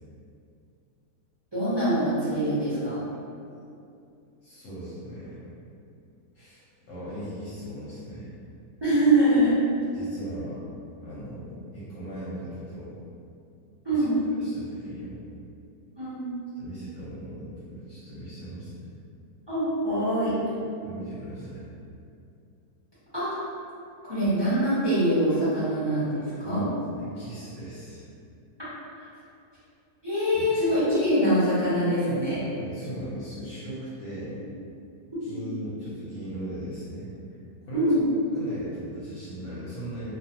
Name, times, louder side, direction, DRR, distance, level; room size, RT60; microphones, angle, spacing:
voice 1, 1.5-3.0 8.8-9.5 13.8-14.2 16.0-16.3 19.5-20.4 23.1-23.4 24.0-26.7 29.0-29.1 30.0-32.4 35.3-35.4 37.7-38.0, right 1 dB, 30° right, -13 dB, 0.4 m, -24 dB
voice 2, 4.4-5.4 6.3-8.3 9.9-10.6 11.0-12.9 13.9-15.2 16.6-19.0 20.8-21.6 26.4-28.1 30.3-30.5 32.6-34.4 35.2-37.1 37.6-38.0 38.3-40.1, equal, 65° left, -10 dB, 0.9 m, -39 dB
2.4 x 2.3 x 2.8 m, 2.6 s
omnidirectional pair, 1.7 m